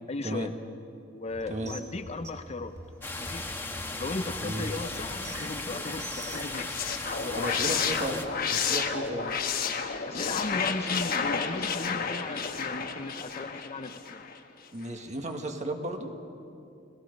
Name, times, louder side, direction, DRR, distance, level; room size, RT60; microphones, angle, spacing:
voice 1, 0.1-0.5 1.1-2.7 3.2-3.4 3.9-6.7 7.2-7.9 10.1-14.2, left 3 dB, 35° left, 9 dB, 0.6 m, -36 dB
sound 1, 1.3-6.6, right 1 dB, 15° right, 2.2 m, -45 dB
sound 2, 3.0-8.3, left 2 dB, 15° left, 1.3 m, -37 dB
sound 3, 6.3-14.4, left 6 dB, 50° left, 1.2 m, -31 dB
voice 2, 7.3-8.2 8.5-9.3 14.7-16.1, right 1 dB, 40° right, 4 dB, 1.7 m, -34 dB
30.0 x 19.0 x 5.3 m, 2.6 s
head